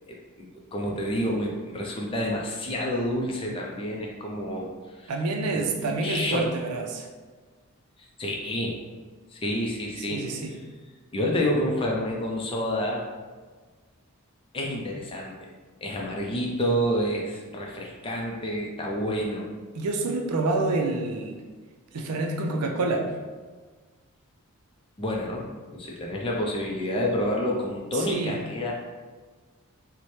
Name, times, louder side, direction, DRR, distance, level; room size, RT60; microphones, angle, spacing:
voice 1, 0.1-5.1 5.5-6.5 8.0-8.8 9.3-10.2 11.1-13.0 14.5-15.5 15.8-19.5 25.0-25.5 25.7-28.7, equal, 25° left, -1 dB, 0.4 m, -29 dB
voice 2, 5.1-7.1 10.0-10.6 19.7-21.4 21.9-23.1 27.9-28.4, right 2 dB, 85° right, 3 dB, 0.4 m, -27 dB
4.1 x 2.1 x 3.1 m, 1.4 s
head